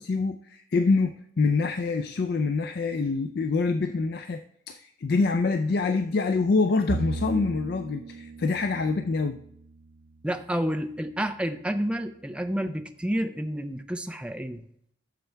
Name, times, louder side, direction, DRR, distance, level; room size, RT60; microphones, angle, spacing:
voice 1, 0.0-4.4 4.7-9.4, left 4 dB, 55° left, 9 dB, 0.4 m, -25 dB
Bowed string instrument, 6.9-10.4, right 3 dB, 75° right, 0.5 m, -37 dB
voice 2, 10.2-14.7, equal, 5° right, 7 dB, 0.5 m, -30 dB
14.0 x 6.8 x 3.3 m, 0.72 s
head